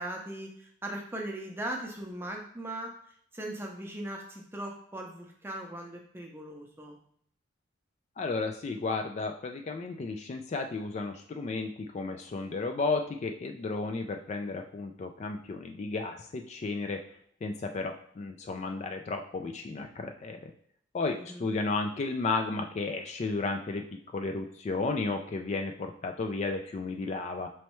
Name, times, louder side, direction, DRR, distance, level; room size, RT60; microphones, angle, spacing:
voice 1, 0.0-2.9 3.3-7.0 21.1-21.5, right 1 dB, 10° right, 1 dB, 0.6 m, -39 dB
voice 2, 8.2-17.0 17.4-20.5 20.9-23.8 24.1-27.5, left 3 dB, 35° left, 5 dB, 0.3 m, -33 dB
4.4 x 3.1 x 3.0 m, 0.64 s
head